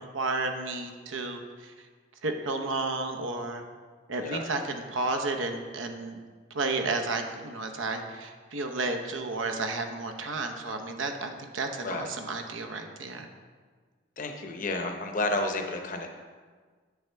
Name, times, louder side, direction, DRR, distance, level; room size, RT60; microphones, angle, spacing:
voice 1, 0.0-1.7 2.2-3.6 4.1-6.2 6.5-13.3, right 3 dB, 90° right, 5 dB, 0.8 m, -32 dB
voice 2, 14.2-16.1, left 2 dB, 45° left, 4 dB, 0.7 m, -31 dB
8.3 x 7.1 x 3.4 m, 1.5 s
head